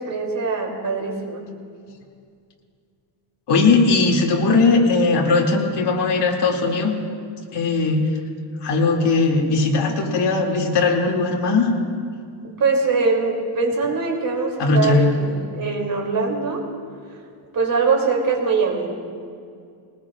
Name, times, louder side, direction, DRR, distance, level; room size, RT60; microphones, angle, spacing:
voice 1, 0.0-1.5 12.6-16.7 17.5-18.9, right 4 dB, 40° right, 0 dB, 2.9 m, -22 dB
voice 2, 3.5-6.9 7.5-8.0 8.6-11.7 14.6-15.1, left 3 dB, 55° left, -1 dB, 2.5 m, -18 dB
22.0 x 20.0 x 2.4 m, 2.3 s
cardioid pair, 130°, 49 cm